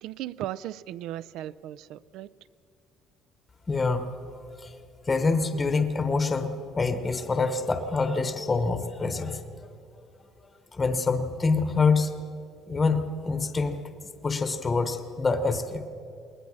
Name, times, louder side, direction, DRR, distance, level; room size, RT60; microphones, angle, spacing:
voice 1, 0.0-2.3, right 13 dB, 65° right, 18 dB, 0.4 m, -36 dB
voice 2, 3.7-4.1 4.6-4.8 5.1-9.7 10.7-12.1 12.7-13.8 14.2-15.8, left 4 dB, 15° left, 9 dB, 0.9 m, -26 dB
21.0 x 19.5 x 6.3 m, 2.5 s
cardioid pair, 170°, 0 cm